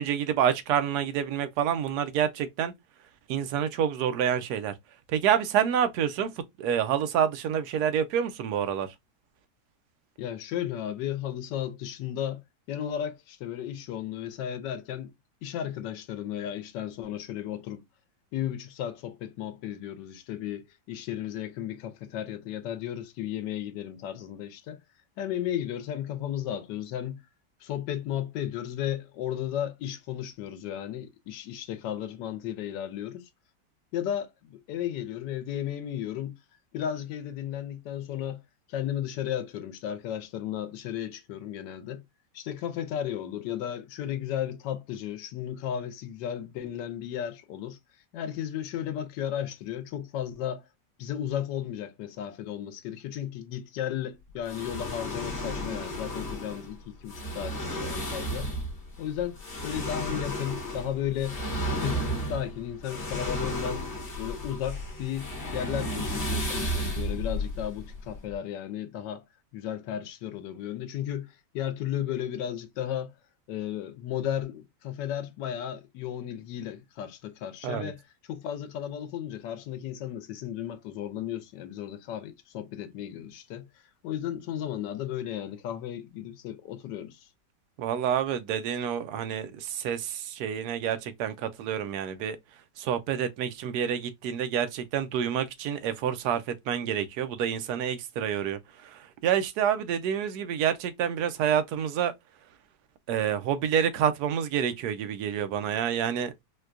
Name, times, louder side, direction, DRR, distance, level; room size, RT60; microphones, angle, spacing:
voice 1, 0.0-2.7 3.3-4.7 5.1-6.3 6.6-8.9 77.6-77.9 87.8-92.4 92.8-102.1 103.1-106.4, right 9 dB, 70° right, 1.1 m, -28 dB
voice 2, 10.2-12.4 12.7-15.1 15.4-17.8 18.3-24.8 25.2-27.2 27.6-33.3 33.9-36.3 36.7-38.4 38.7-42.0 42.3-47.8 48.1-50.6 51.0-58.5 59.0-61.4 61.8-63.9 64.2-69.2 69.5-73.1 73.5-78.0 78.3-83.7 84.0-87.3, left 10 dB, 85° left, 1.2 m, -34 dB
sound 1, 54.5-68.3, equal, 45° left, 1.2 m, -33 dB
4.4 x 2.2 x 2.4 m
omnidirectional pair, 1.9 m